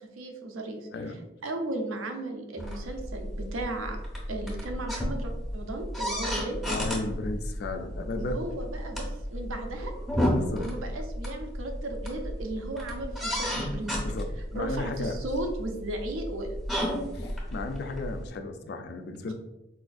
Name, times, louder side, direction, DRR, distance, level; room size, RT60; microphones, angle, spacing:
voice 1, 0.2-0.9 1.4-4.0 4.3-6.6 8.2-9.9 10.6-14.0 14.5-16.6 19.3-19.4, right 2 dB, 85° right, 4 dB, 0.5 m, -35 dB
sound 1, 2.6-18.3, equal, ahead, 0.6 m, -33 dB
voice 2, 6.7-8.4 10.3-10.7 14.0-14.3 14.5-15.2 17.1-19.3, left 2 dB, 50° left, 7 dB, 0.3 m, -34 dB
4.2 x 2.5 x 2.3 m, 0.97 s
head